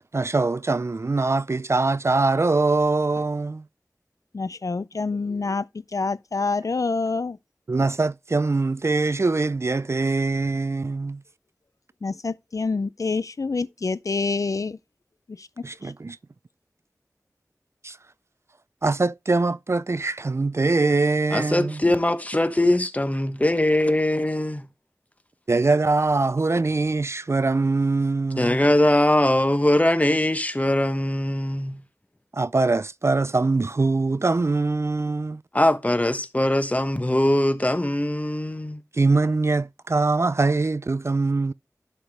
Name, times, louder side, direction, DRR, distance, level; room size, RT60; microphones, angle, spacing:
voice 1, 0.0-3.6 7.7-11.2 15.6-16.2 17.8-18.0 18.8-21.8 25.5-28.6 32.3-35.4 38.9-41.5, right 3 dB, 45° right, 0.3 m, -23 dB
voice 2, 4.3-5.6 5.9-7.4 12.0-14.8, left 4 dB, 65° left, 0.4 m, -26 dB
voice 3, 21.3-24.7 28.4-31.8 35.5-38.8, left 1 dB, 25° left, 1.0 m, -21 dB
11.5 x 5.0 x 3.5 m
wide cardioid pair, 45°, 6 cm